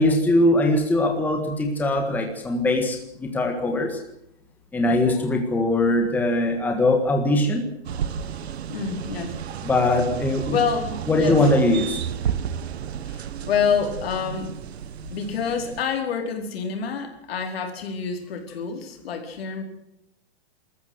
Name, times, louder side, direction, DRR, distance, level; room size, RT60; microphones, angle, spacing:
voice 1, 0.0-4.0 4.7-7.6 9.6-10.6 11.1-12.0, left 1 dB, 5° left, 3 dB, 1.7 m, -21 dB
sound 1, 7.8-15.8, right 8 dB, 75° right, 1.5 m, -32 dB
voice 2, 8.7-9.4 10.5-11.4 13.1-14.5 15.1-19.6, left 6 dB, 65° left, 4 dB, 4.6 m, -27 dB
24.0 x 14.0 x 8.0 m, 0.79 s
hypercardioid pair, 170°, 32 cm